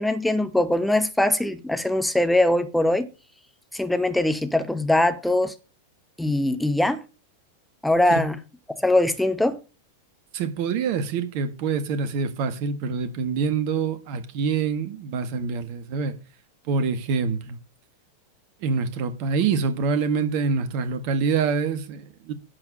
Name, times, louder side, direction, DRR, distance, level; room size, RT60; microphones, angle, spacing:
voice 1, 0.0-3.1 3.7-5.5 6.2-7.0 7.8-8.4 8.8-9.6, left 1 dB, 5° left, 1.0 m, -22 dB
voice 2, 10.3-16.1 16.7-17.6 18.6-22.3, right 5 dB, 45° right, 1.6 m, -25 dB
10.5 x 4.9 x 6.7 m
figure-of-eight pair, 90°, 0 cm